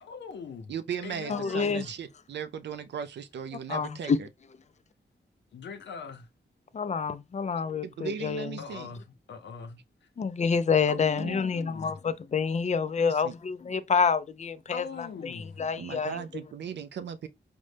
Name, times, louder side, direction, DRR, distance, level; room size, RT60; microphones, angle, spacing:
voice 1, 0.0-0.7 1.0-1.9 5.5-6.3 8.6-9.8 10.9-12.0 14.7-15.6, left 6 dB, 90° left, 0.6 m, -41 dB
voice 2, 0.7-4.1 7.8-8.9 11.2-11.4 13.0-13.3 15.8-17.3, right 7 dB, 80° right, 0.4 m, -37 dB
voice 3, 1.3-1.8 3.7-4.2 6.7-8.6 10.2-16.2, left 5 dB, 40° left, 0.4 m, -28 dB
5.1 x 2.1 x 3.2 m
wide cardioid pair, 125°, 18 cm